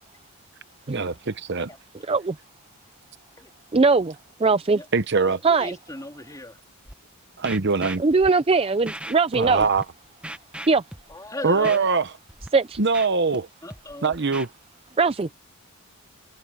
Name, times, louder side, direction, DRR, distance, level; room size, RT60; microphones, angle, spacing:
voice 1, 0.9-1.7 4.9-5.4 7.4-8.0 9.3-9.8 11.4-12.1 12.8-13.5 14.0-14.5, right 4 dB, 50° right, 0.9 m, -22 dB
voice 2, 3.7-4.1 4.4-4.8 5.4-5.8 8.0-9.6 10.7-10.8 12.5-12.8 15.0-15.3, right 4 dB, 25° right, 0.4 m, -20 dB
voice 3, 5.1-6.6 11.1-11.9 13.6-14.1, left 1 dB, 15° left, 3.1 m, -37 dB
Scratching (performance technique), 6.9-7.0 7.4-8.3 8.9-9.1 9.4-9.8 10.2-11.1 11.6-11.8 12.3-12.5 12.7-13.4 13.7-14.5, right 1 dB, 5° right, 1.0 m, -37 dB
head